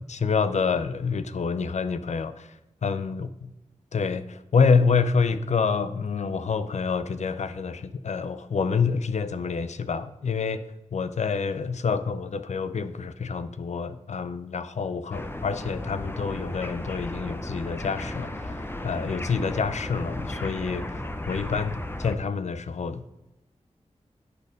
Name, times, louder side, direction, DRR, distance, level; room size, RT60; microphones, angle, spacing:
voice 1, 0.0-3.5 3.9-21.0 21.3-23.1, left 5 dB, 70° left, 12 dB, 0.5 m, -27 dB
sound 1, 15.1-22.2, left 1 dB, 20° left, 0.7 m, -35 dB
10.5 x 4.1 x 5.1 m, 0.96 s
cardioid pair, 50°, 12 cm